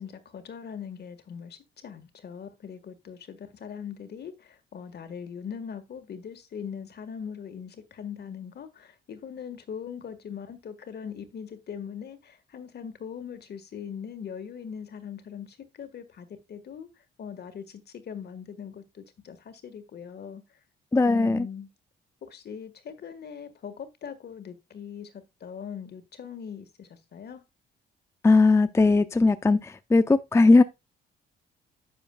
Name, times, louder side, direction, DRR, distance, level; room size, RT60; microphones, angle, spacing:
voice 1, 0.0-16.9 17.2-20.4 21.0-21.7 22.3-25.1 25.4-27.4, left 7 dB, 55° left, 1.7 m, -40 dB
voice 2, 20.9-21.5 28.2-30.6, left 3 dB, 15° left, 0.5 m, -19 dB
10.5 x 6.9 x 2.4 m
cardioid pair, 90°, 20 cm